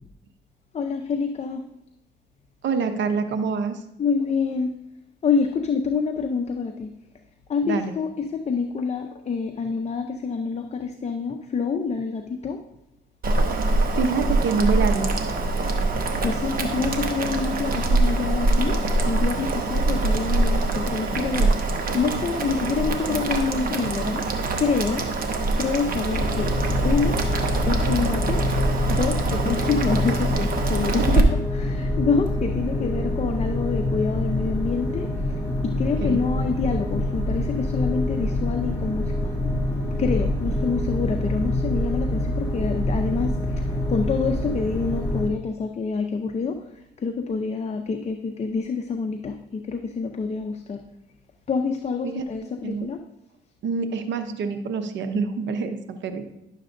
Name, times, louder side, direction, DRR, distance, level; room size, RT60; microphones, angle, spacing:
voice 1, 0.7-1.6 4.0-4.7 5.2-6.9 7.5-12.6 16.1-18.8 19.1-21.5 21.9-24.2 24.6-25.0 25.6-26.5 26.8-27.2 27.7-28.4 28.9-31.3 31.5-35.1 35.6-39.3 40.0-43.3 43.9-46.6 47.0-49.4 49.7-50.8 51.5-53.0, left 5 dB, 35° left, 5 dB, 0.6 m, -26 dB
voice 2, 2.6-3.8 7.6-7.9 14.0-15.1 36.0-36.2 52.0-52.9 53.6-56.3, right 5 dB, 70° right, 8 dB, 0.8 m, -26 dB
Boiling, 13.2-31.2, right 2 dB, 45° right, 1.0 m, -24 dB
sound 1, 26.1-45.3, left 1 dB, 15° left, 2.6 m, -26 dB
10.5 x 6.6 x 2.6 m, 0.87 s
cardioid pair, 90°, 20 cm